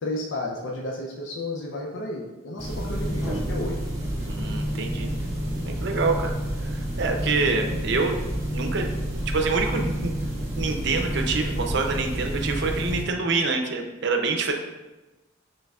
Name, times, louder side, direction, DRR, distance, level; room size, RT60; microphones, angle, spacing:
voice 1, 0.0-3.9, left 1 dB, 60° left, -2 dB, 0.5 m, -32 dB
sound 1, 2.6-13.0, equal, 15° right, 0.9 m, -29 dB
voice 2, 4.2-5.1 5.6-6.3 6.6-6.7 7.0-8.9 9.3-10.1 10.6-14.5, right 4 dB, 55° right, 4 dB, 0.5 m, -26 dB
6.5 x 3.3 x 2.3 m, 1.1 s
head